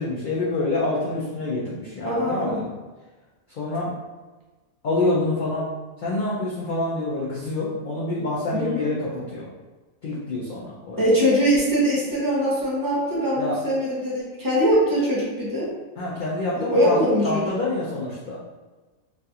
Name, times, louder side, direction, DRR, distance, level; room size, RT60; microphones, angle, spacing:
voice 1, 0.0-2.7 3.5-3.9 4.8-5.7 6.0-9.5 10.0-11.1 13.4-13.6 16.0-17.0 17.2-18.4, left 2 dB, 65° left, -6 dB, 0.5 m, -27 dB
voice 2, 2.0-2.6 8.5-8.9 11.0-15.7 16.7-17.4, equal, 25° right, -7 dB, 0.5 m, -22 dB
3.1 x 2.4 x 2.7 m, 1.3 s
omnidirectional pair, 1.4 m